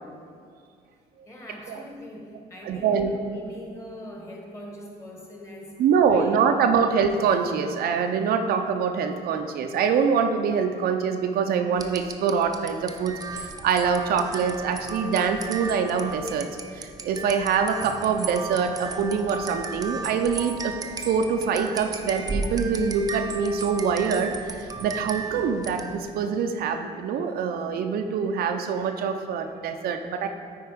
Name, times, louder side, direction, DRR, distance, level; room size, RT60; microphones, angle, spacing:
voice 1, 1.3-5.8 6.1-6.5, equal, 15° left, -1 dB, 1.6 m, -42 dB
voice 2, 2.6-3.2 5.8-16.5 16.7-30.3, right 6 dB, 65° right, 5 dB, 0.6 m, -24 dB
sound 1, 11.8-26.2, right 3 dB, 20° right, 0.6 m, -35 dB
9.4 x 4.6 x 5.0 m, 2.2 s
cardioid pair, 110°, 17 cm